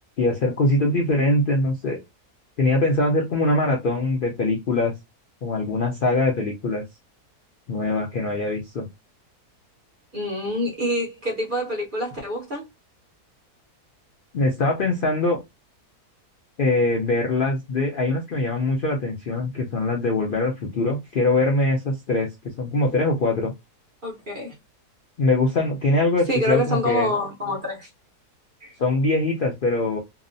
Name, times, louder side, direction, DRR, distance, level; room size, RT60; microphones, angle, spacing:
voice 1, 0.2-2.0 2.6-4.9 5.4-6.8 7.7-8.9 14.3-15.4 16.6-22.3 22.6-23.5 25.2-27.1 28.8-30.0, left 2 dB, 80° left, 0.4 m, -22 dB
voice 2, 10.1-12.6 24.0-24.5 26.3-27.9 28.6-28.8, equal, 45° right, 0.7 m, -26 dB
2.8 x 2.0 x 2.5 m
omnidirectional pair, 1.7 m